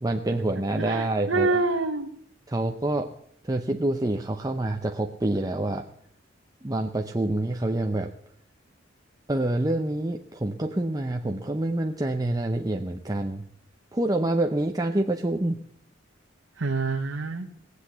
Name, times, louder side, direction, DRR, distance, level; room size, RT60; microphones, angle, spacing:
voice 1, 0.0-1.6 2.5-3.1 3.4-5.9 6.6-8.1 9.3-13.4 13.9-15.6, right 1 dB, 20° right, 3 dB, 0.7 m, -27 dB
voice 2, 0.8-2.1 16.6-17.5, right 3 dB, 85° right, 3 dB, 1.1 m, -26 dB
18.5 x 8.2 x 8.2 m, 0.67 s
head